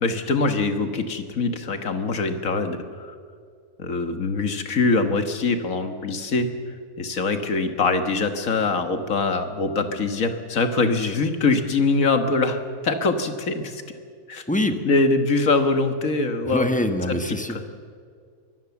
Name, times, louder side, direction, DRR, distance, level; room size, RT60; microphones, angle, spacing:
voice 1, 0.0-2.8 3.8-6.5 7.0-13.8 14.3-14.4 14.9-16.7 17.1-17.2 17.5-17.6, left 3 dB, 60° left, 7 dB, 1.9 m, -23 dB
voice 2, 14.5-14.8 16.4-17.8, left 1 dB, 5° left, 7 dB, 1.1 m, -24 dB
23.0 x 19.0 x 7.1 m, 2.1 s
omnidirectional pair, 1.7 m